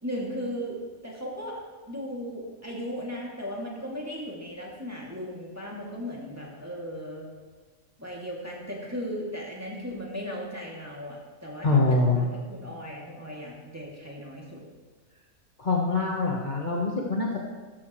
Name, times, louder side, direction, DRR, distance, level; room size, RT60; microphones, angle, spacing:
voice 1, 0.0-1.6 1.9-7.3 8.0-14.6, equal, 10° right, -4 dB, 2.4 m, -36 dB
voice 2, 11.6-12.3 15.6-17.5, left 3 dB, 35° left, -3 dB, 1.3 m, -24 dB
14.0 x 12.5 x 3.1 m, 1.4 s
omnidirectional pair, 1.4 m